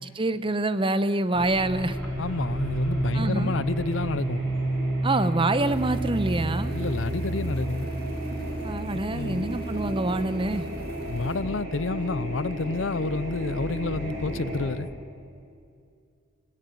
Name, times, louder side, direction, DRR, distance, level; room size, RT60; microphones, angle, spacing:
voice 1, 0.0-2.0 3.1-3.5 5.0-6.7 8.6-10.7, right 2 dB, 25° right, 0.9 m, -26 dB
sound 1, 1.3-14.7, right 1 dB, 80° right, 7.7 m, -31 dB
sound 2, 1.6-7.4, equal, 5° left, 5.0 m, -45 dB
voice 2, 2.2-4.5 6.7-7.9 9.1-9.5 11.1-14.9, left 3 dB, 75° left, 0.7 m, -29 dB
sound 3, 5.6-11.4, right 2 dB, 55° right, 4.7 m, -35 dB
26.0 x 18.5 x 9.4 m
head